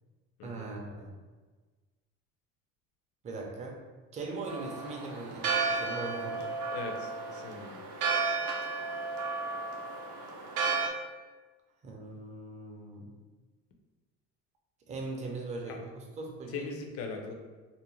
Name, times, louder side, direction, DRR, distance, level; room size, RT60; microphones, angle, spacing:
voice 1, 0.4-1.1 3.2-3.8 4.1-6.5 11.8-13.1 14.9-16.7, right 3 dB, 25° right, 0 dB, 0.4 m, -40 dB
Church bell, 4.5-10.9, right 4 dB, 90° right, 0.5 m, -33 dB
voice 2, 6.7-7.9 15.7-15.8 16.5-17.3, left 4 dB, 55° left, 3 dB, 0.5 m, -40 dB
2.5 x 2.1 x 3.0 m, 1.3 s
cardioid pair, 145°, 29 cm